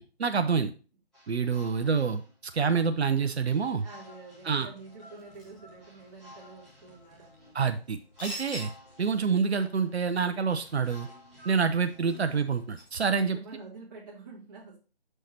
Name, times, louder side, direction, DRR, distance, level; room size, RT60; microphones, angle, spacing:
voice 1, 0.2-0.7 1.3-2.2 2.5-3.8 4.5-4.7 7.5-8.7 9.0-11.1 11.5-13.4, right 5 dB, 75° right, 9 dB, 0.7 m, -27 dB
sound 1, 1.1-12.7, equal, ahead, 1.1 m, -54 dB
voice 2, 3.8-7.7 13.0-14.8, right 3 dB, 20° right, -7 dB, 2.2 m, -48 dB
sound 2, 5.2-13.2, equal, 30° left, 2.7 m, -48 dB
6.4 x 6.4 x 2.8 m, 0.34 s
figure-of-eight pair, 165°, 33 cm